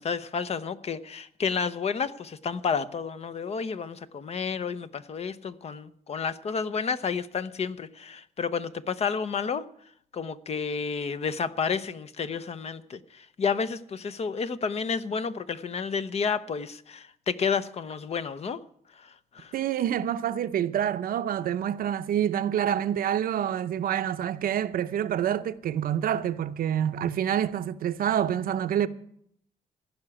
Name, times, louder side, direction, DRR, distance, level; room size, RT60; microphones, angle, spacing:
voice 1, 0.0-9.6 10.1-18.6 18.9-19.5, left 5 dB, 45° left, 0.7 m, -31 dB
voice 2, 19.5-28.9, right 10 dB, 75° right, 0.7 m, -27 dB
16.0 x 5.9 x 9.9 m
cardioid pair, 115°, 15 cm